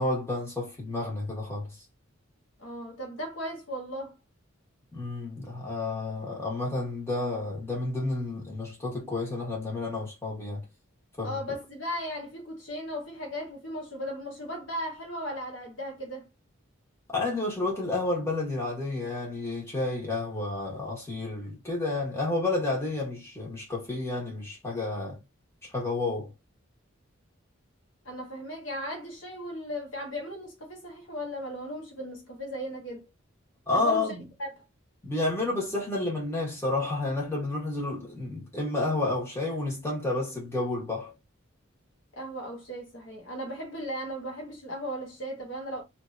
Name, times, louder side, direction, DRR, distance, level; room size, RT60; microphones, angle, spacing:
voice 1, 0.0-1.7 4.9-10.6 11.2-11.4 17.1-25.2 25.6-26.3 33.7-34.2 35.0-41.1, left 2 dB, 15° left, 1.4 m, -30 dB
voice 2, 2.6-4.1 11.2-16.3 28.0-33.1 33.7-34.6 42.2-45.8, equal, 70° left, 1.2 m, -36 dB
3.2 x 2.8 x 2.5 m
head